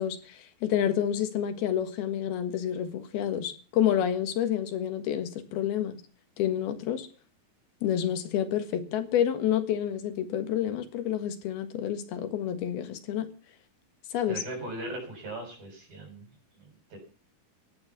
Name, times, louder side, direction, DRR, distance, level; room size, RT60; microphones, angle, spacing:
voice 1, 0.0-6.0 6.4-7.1 7.8-13.3 14.1-14.4, left 10 dB, 85° left, 3.5 m, -29 dB
voice 2, 14.3-16.3 16.5-17.0, right 1 dB, 65° right, 8.6 m, -39 dB
16.0 x 11.0 x 6.0 m
omnidirectional pair, 4.3 m